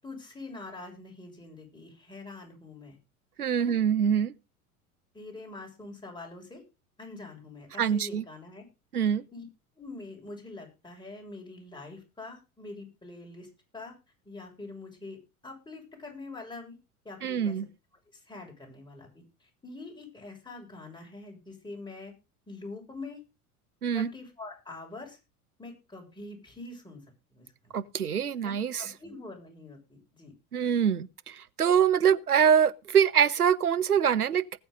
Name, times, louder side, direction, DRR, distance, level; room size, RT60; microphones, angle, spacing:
voice 1, 0.0-3.0 3.6-3.8 5.1-6.6 7.0-8.6 8.9-9.4 9.7-13.9 14.2-16.8 17.0-17.6 18.1-22.1 22.5-23.2 23.9-25.2 25.6-27.0 27.3-27.7 28.4-30.3, left 3 dB, 10° left, 6.8 m, -44 dB
voice 2, 3.4-4.3 7.8-8.2 8.9-9.2 17.2-17.7 23.8-24.1 27.7-28.9 30.5-34.6, right 8 dB, 85° right, 0.7 m, -24 dB
19.5 x 8.0 x 3.9 m
figure-of-eight pair, 75°, 44 cm